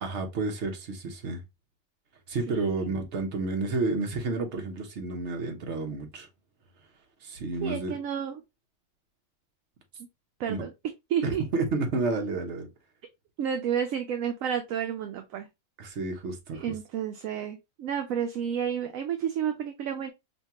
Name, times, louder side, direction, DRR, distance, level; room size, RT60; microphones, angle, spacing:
voice 1, 0.0-1.4 2.3-6.3 7.2-8.0 10.5-10.6 11.2-12.7 15.8-16.6, right 3 dB, 55° right, 1.2 m, -30 dB
voice 2, 2.5-2.9 7.6-8.4 10.4-10.7 11.1-11.4 13.4-15.5 16.5-20.1, right 8 dB, 70° right, 0.9 m, -31 dB
5.7 x 2.3 x 2.9 m
omnidirectional pair, 1.5 m